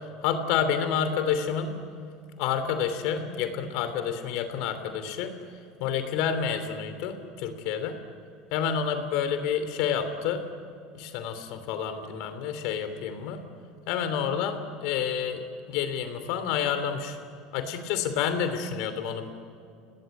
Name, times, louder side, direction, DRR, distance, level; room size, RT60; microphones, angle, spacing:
voice 1, 0.2-1.8 2.4-5.3 5.8-8.0 8.5-10.4 10.9-13.4 13.9-17.2 17.5-19.3, left 7 dB, 65° left, 9 dB, 3.0 m, -29 dB
30.0 x 18.5 x 8.6 m, 2.3 s
hypercardioid pair, 90°, 0 cm